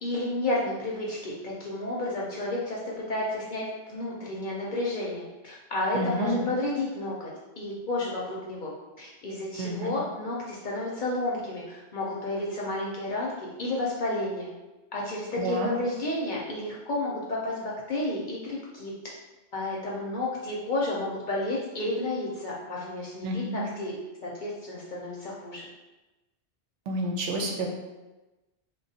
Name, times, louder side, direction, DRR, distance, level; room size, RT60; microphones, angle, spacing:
voice 1, 0.0-2.8 3.1-7.3 7.6-14.5 14.9-18.9 19.5-23.9 24.2-25.6, left 2 dB, 55° left, -4 dB, 0.6 m, -31 dB
voice 2, 5.9-6.4 9.6-9.9 15.4-15.7 23.2-23.7 26.9-27.7, right 1 dB, 80° right, 1 dB, 0.9 m, -29 dB
3.3 x 2.2 x 2.7 m, 1.1 s
omnidirectional pair, 1.2 m